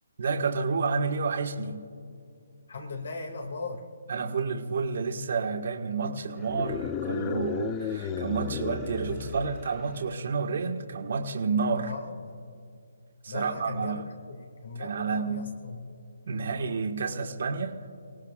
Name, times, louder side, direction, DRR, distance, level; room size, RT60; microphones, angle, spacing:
voice 1, 0.2-1.8 4.1-11.9 13.2-14.0 14.7-15.5 16.3-17.9, right 4 dB, 55° right, 3 dB, 1.7 m, -30 dB
voice 2, 2.7-3.9 11.8-12.4 13.3-16.0 16.5-16.8, left 3 dB, 70° left, 3 dB, 2.2 m, -39 dB
sound 1, 6.4-10.1, left 8 dB, 15° left, 0.4 m, -34 dB
30.0 x 18.0 x 2.5 m, 2.4 s
hypercardioid pair, 165°, 0 cm